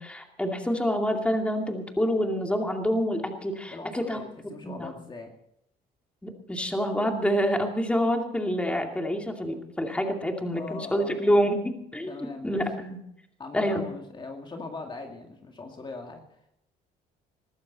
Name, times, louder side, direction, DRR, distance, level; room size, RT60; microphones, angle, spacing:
voice 1, 0.0-4.2 4.6-4.9 6.2-13.0 13.5-13.8, equal, 5° left, 3 dB, 2.5 m, -27 dB
voice 2, 3.7-5.3 10.5-11.4 12.1-12.6 13.4-16.2, left 3 dB, 30° left, 3 dB, 2.2 m, -40 dB
21.0 x 14.5 x 4.1 m, 0.75 s
cardioid pair, 110°, 17 cm